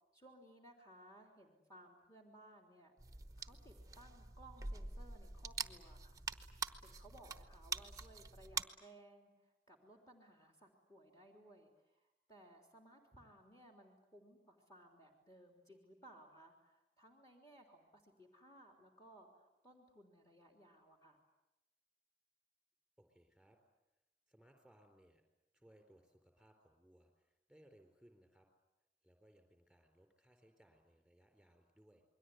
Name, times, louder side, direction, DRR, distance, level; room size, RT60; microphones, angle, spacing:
voice 1, 0.1-2.9 3.4-6.2 6.8-21.2, right 1 dB, 20° left, 3 dB, 3.4 m, -61 dB
sound 1, 3.0-8.6, right 5 dB, 20° right, 1.0 m, -45 dB
voice 2, 23.0-23.6 23.9-24.0 24.3-25.2 25.5-28.5 29.0-32.0, right 1 dB, ahead, 5 dB, 4.1 m, -67 dB
28.0 x 22.0 x 9.4 m, 0.91 s
head